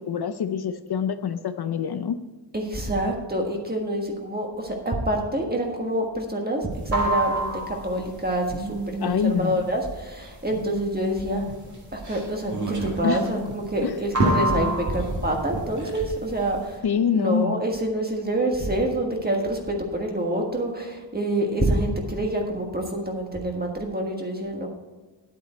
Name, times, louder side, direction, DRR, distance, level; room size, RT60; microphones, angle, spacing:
voice 1, 0.0-2.2 9.0-9.6 13.0-13.2 13.8-14.0 16.8-17.6, left 7 dB, 55° left, 10 dB, 0.6 m, -25 dB
voice 2, 2.5-11.4 11.9-16.8 17.1-24.7, right 1 dB, 20° right, 1 dB, 1.5 m, -27 dB
sound 1, 6.7-16.8, right 1 dB, 40° right, 2.0 m, -28 dB
Telephone, 8.5-9.6 10.5-11.6 12.5-13.6 14.5-14.8, right 1 dB, 90° right, 1.3 m, -33 dB
10.5 x 8.4 x 4.3 m, 1.3 s
wide cardioid pair, 170°, 45 cm